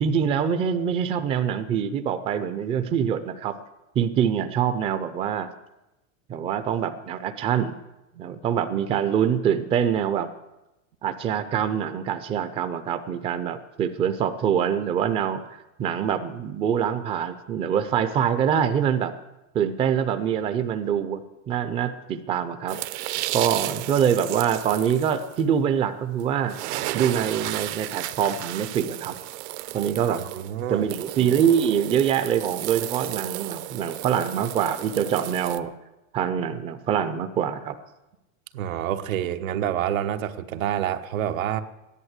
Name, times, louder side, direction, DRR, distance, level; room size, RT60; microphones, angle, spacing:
voice 1, 0.0-3.6 4.0-5.5 6.3-7.8 8.2-10.3 11.0-15.4 15.8-19.1 19.5-21.2 21.5-22.8 23.3-26.6 26.9-29.1 29.7-30.2 30.7-35.7 36.1-37.8, right 8 dB, 15° right, 9 dB, 0.4 m, -24 dB
sound 1, 22.7-25.4 26.2-26.3 26.5-35.6, right 16 dB, 55° right, 0.8 m, -33 dB
voice 2, 30.1-30.9 38.5-41.6, right 11 dB, 85° right, 8 dB, 1.3 m, -28 dB
14.5 x 11.0 x 8.1 m, 0.96 s
supercardioid pair, 155°, 40 cm